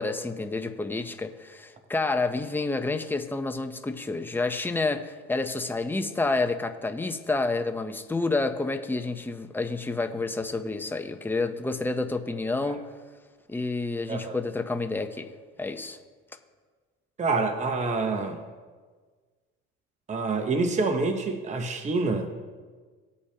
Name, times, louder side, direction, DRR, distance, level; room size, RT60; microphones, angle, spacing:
voice 1, 0.0-12.8 13.5-15.3 15.6-16.0, left 3 dB, 5° left, 7 dB, 0.6 m, -29 dB
voice 2, 17.2-18.4 20.1-22.3, right 3 dB, 25° right, 6 dB, 0.9 m, -27 dB
18.5 x 8.4 x 2.8 m, 1.5 s
cardioid pair, 110°, 31 cm